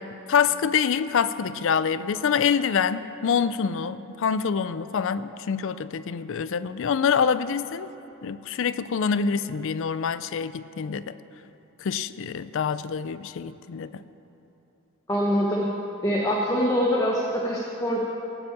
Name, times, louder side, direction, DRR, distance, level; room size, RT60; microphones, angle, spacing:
voice 1, 0.3-7.9 8.2-11.2 11.8-14.0, left 6 dB, 60° left, 14 dB, 0.4 m, -26 dB
voice 2, 15.1-15.7 16.0-18.0, equal, 15° left, -3 dB, 1.1 m, -24 dB
17.0 x 6.1 x 8.6 m, 3.0 s
head